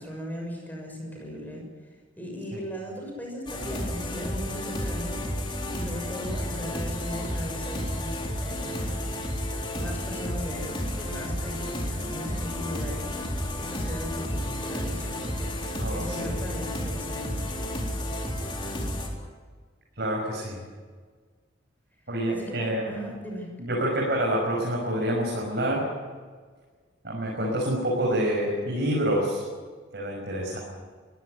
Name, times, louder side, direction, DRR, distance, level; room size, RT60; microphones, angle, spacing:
voice 1, 0.0-1.6 2.2-5.2 5.7-9.1 9.7-13.1 13.4-17.6 22.3-23.5, equal, 10° left, 1 dB, 6.5 m, -38 dB
sound 1, 3.5-19.1, left 1 dB, 25° left, 3.9 m, -32 dB
voice 2, 15.8-16.4 20.0-20.6 22.1-22.9 23.6-25.9 27.0-29.4 29.9-30.6, right 1 dB, 55° right, -3 dB, 6.1 m, -27 dB
22.5 x 16.5 x 9.5 m, 1.5 s
head